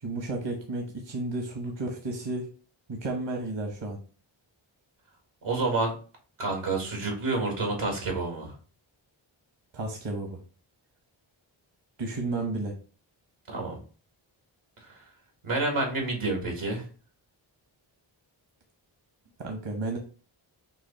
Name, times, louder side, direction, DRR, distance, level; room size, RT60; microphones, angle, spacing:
voice 1, 0.0-2.5 2.9-4.0 9.7-10.4 12.0-12.7 19.4-20.0, right 2 dB, 60° right, 2 dB, 1.1 m, -32 dB
voice 2, 5.4-5.9 6.4-8.5 13.5-13.8 15.4-16.8, right 2 dB, 85° right, 1 dB, 1.7 m, -28 dB
6.0 x 2.0 x 4.0 m, 0.39 s
cardioid pair, 45°, 49 cm